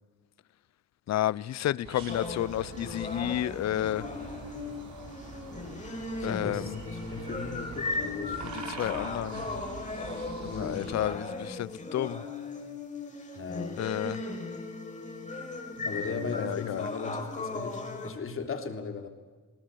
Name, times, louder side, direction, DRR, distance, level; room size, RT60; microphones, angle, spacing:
voice 1, 1.1-4.1 6.2-6.8 8.4-9.4 10.4-12.2 13.8-14.3 15.8-16.9, left 13 dB, 60° left, 0.7 m, -31 dB
sound 1, 1.8-11.1, right 4 dB, 65° right, 5.4 m, -44 dB
sound 2, 2.1-18.1, left 3 dB, 25° left, 4.9 m, -37 dB
voice 2, 6.2-8.4 8.8-9.4 10.5-10.9 13.3-13.9 15.8-19.1, left 4 dB, 45° left, 3.4 m, -38 dB
20.5 x 19.0 x 10.0 m
cardioid pair, 90°, 30 cm